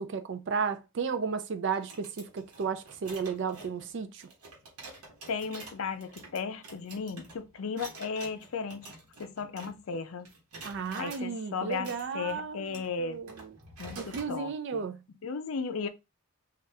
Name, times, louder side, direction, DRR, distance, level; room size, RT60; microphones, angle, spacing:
voice 1, 0.0-4.3 10.6-13.5 14.0-15.0, right 5 dB, 55° right, 0.4 m, -34 dB
sound 1, 1.7-10.0 10.3-11.3 11.7-14.3, right 3 dB, 90° right, 1.0 m, -49 dB
voice 2, 5.3-8.9 9.2-10.3 10.9-13.2 13.8-14.8 15.2-15.9, left 5 dB, 65° left, 0.4 m, -35 dB
3.3 x 2.4 x 2.7 m
head